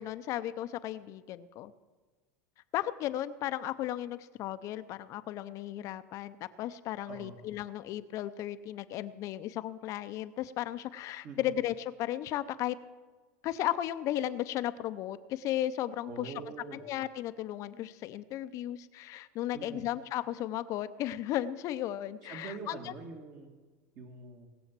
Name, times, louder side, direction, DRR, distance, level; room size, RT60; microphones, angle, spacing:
voice 1, 0.0-1.7 2.7-12.8 13.4-16.3 16.7-22.9, left 13 dB, 45° left, 13 dB, 0.6 m, -35 dB
voice 2, 7.1-7.4 11.2-11.5 16.0-16.8 19.5-19.8 22.2-23.5 24.0-24.5, right 4 dB, 45° right, 0 dB, 2.1 m, -44 dB
19.5 x 7.0 x 7.5 m, 1.4 s
supercardioid pair, 120°, 7 cm